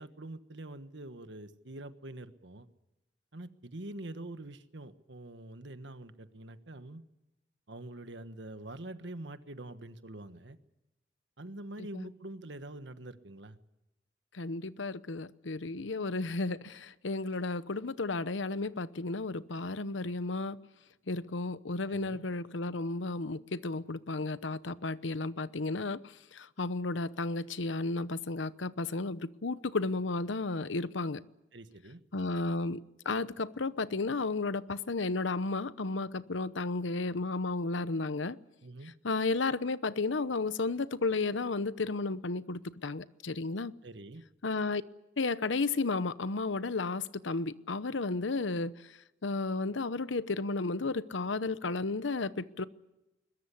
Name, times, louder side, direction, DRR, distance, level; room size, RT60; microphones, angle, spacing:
voice 1, 0.0-2.7 3.3-7.0 7.7-10.6 11.4-13.6 21.9-22.2 31.5-32.0 38.6-38.9 43.8-44.2, right 1 dB, 75° right, 1.4 m, -45 dB
voice 2, 14.3-20.6 21.1-26.0 26.3-31.2 32.1-38.4 39.0-43.7 44.4-44.8 45.2-48.7 49.2-52.6, left 3 dB, 90° left, 0.9 m, -33 dB
21.5 x 21.0 x 8.5 m
head